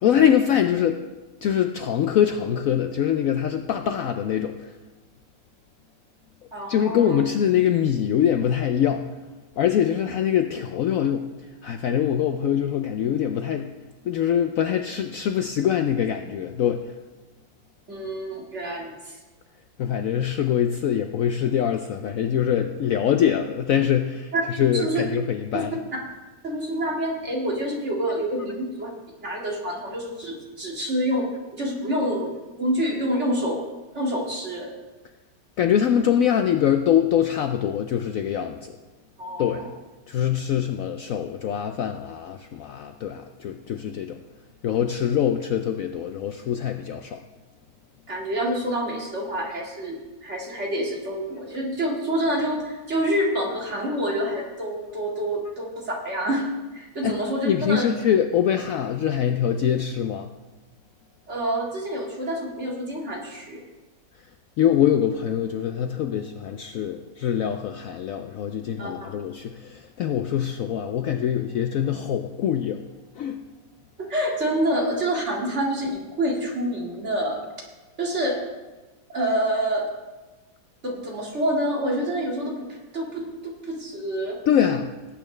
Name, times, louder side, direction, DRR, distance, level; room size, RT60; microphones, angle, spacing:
voice 1, 0.0-1.0 1.4-4.5 6.7-9.0 9.6-11.3 11.6-13.7 14.1-16.8 19.8-25.7 35.6-38.7 39.4-39.7 40.1-44.2 44.6-47.2 57.0-57.2 57.4-60.3 64.6-72.8 73.2-73.4 84.5-84.9, left 9 dB, 85° left, 7 dB, 0.7 m, -23 dB
voice 2, 6.5-7.2 17.9-19.2 24.3-24.4 24.7-25.1 25.5-25.6 26.4-28.9 29.2-32.3 32.6-33.7 33.9-34.7 39.2-39.7 48.1-56.5 56.7-57.9 61.3-63.6 68.8-69.1 74.0-77.4 78.0-78.4 79.1-79.9 80.8-82.6 82.9-84.4, right 1 dB, 40° right, -2 dB, 2.3 m, -27 dB
18.5 x 8.6 x 3.2 m, 1.2 s
omnidirectional pair, 2.0 m